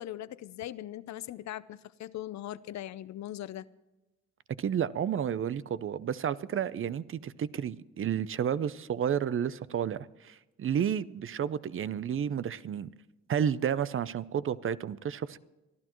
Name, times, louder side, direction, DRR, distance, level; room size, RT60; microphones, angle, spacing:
voice 1, 0.0-3.7, left 13 dB, 65° left, 0.6 m, -40 dB
voice 2, 4.6-12.9 13.3-15.4, right 8 dB, 45° right, 0.6 m, -31 dB
24.0 x 12.5 x 3.1 m
cardioid pair, 90°, 30 cm